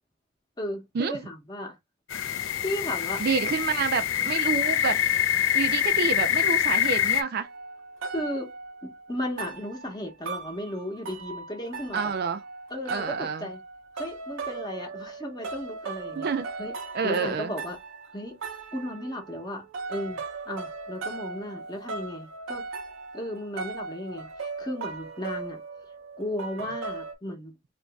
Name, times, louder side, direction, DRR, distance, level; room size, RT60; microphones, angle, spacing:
voice 1, 0.6-1.8 2.6-3.2 8.1-8.5 8.8-12.1 12.7-13.6 13.9-16.3 16.6-16.7 17.0-17.8 18.1-18.4 18.7-22.7 23.1-25.6 26.2-27.5, left 1 dB, 20° left, 0.9 m, -35 dB
sound 1, 2.1-7.2, left 10 dB, 80° left, 0.5 m, -25 dB
voice 2, 3.2-5.0 5.5-7.5 11.9-12.4 12.9-13.5 16.2-16.5 16.9-17.5, right 5 dB, 50° right, 0.4 m, -28 dB
sound 2, 7.4-27.1, right 4 dB, 85° right, 0.7 m, -38 dB
2.9 x 2.6 x 3.4 m
head